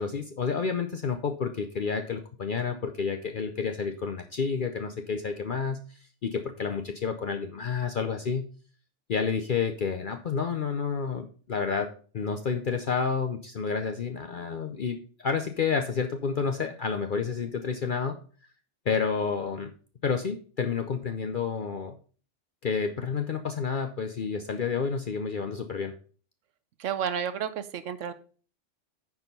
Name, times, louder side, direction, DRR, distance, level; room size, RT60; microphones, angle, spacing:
voice 1, 0.0-8.5 9.1-18.2 18.9-19.7 20.0-22.0 22.6-25.9, left 5 dB, 50° left, 6 dB, 0.7 m, -30 dB
voice 2, 26.8-28.1, right 8 dB, 85° right, 12 dB, 1.1 m, -31 dB
9.5 x 4.8 x 5.2 m, 0.41 s
omnidirectional pair, 1.2 m